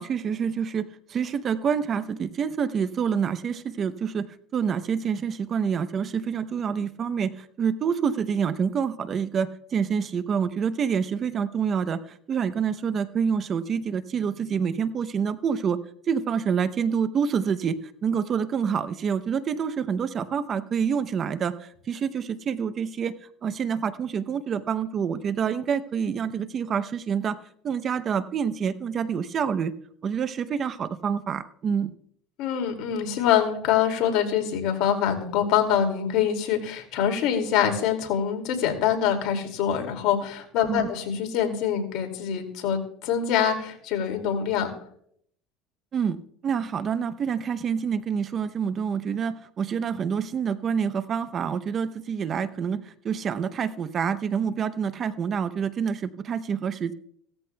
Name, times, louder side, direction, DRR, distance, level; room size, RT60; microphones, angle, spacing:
voice 1, 0.0-4.3 4.5-15.8 16.1-17.7 18.0-23.1 23.4-27.4 27.6-29.7 30.0-31.9 40.7-40.9 45.9-46.2 46.4-56.9, right 7 dB, 40° right, 13 dB, 0.7 m, -27 dB
voice 2, 32.4-44.7, left 9 dB, 65° left, 5 dB, 2.3 m, -25 dB
16.5 x 14.0 x 2.3 m, 0.66 s
supercardioid pair, 110°, 0 cm